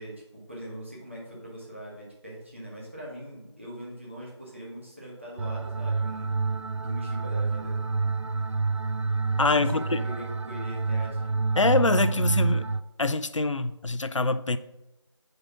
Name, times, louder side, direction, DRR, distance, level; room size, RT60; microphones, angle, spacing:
voice 1, 0.0-6.3 6.7-7.8 9.5-11.3, equal, 25° right, -5 dB, 1.4 m, -41 dB
sound 1, 5.4-12.8, right 4 dB, 75° right, 0.4 m, -28 dB
voice 2, 9.4-10.0 11.6-12.7 13.0-14.6, left 3 dB, 90° left, 12 dB, 0.5 m, -25 dB
5.3 x 4.0 x 5.8 m, 0.94 s
figure-of-eight pair, 180°, 15 cm